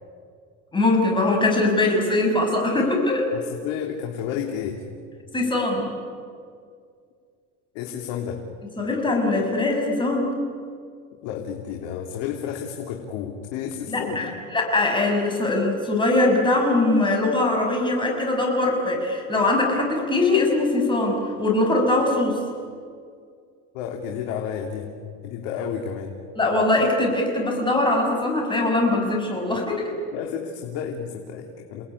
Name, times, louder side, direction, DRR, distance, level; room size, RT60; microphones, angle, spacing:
voice 1, 0.7-3.3 5.3-5.9 8.8-10.3 13.9-22.4 26.3-29.9, left 2 dB, 15° left, 1 dB, 6.3 m, -22 dB
voice 2, 3.3-4.8 7.7-8.4 11.2-14.4 23.7-24.9 25.2-26.1 30.1-31.8, left 8 dB, 70° left, 2 dB, 3.2 m, -31 dB
30.0 x 19.5 x 9.9 m, 2.2 s
cardioid pair, 145°, 37 cm